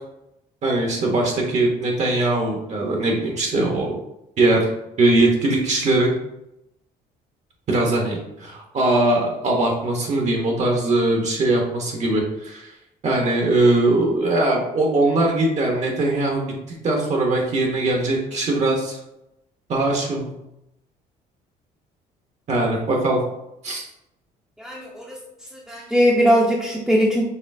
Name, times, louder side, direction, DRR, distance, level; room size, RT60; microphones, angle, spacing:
voice 1, 0.6-4.0 4.4-4.7 5.0-6.1 7.7-12.7 13.0-16.6 16.8-19.0 19.7-20.3 22.5-23.2 23.6-23.8, right 2 dB, 45° right, 0 dB, 0.8 m, -21 dB
voice 2, 24.6-25.2 25.5-27.3, equal, ahead, -4 dB, 0.6 m, -20 dB
4.2 x 3.1 x 2.5 m, 0.86 s
cardioid pair, 110°, 17 cm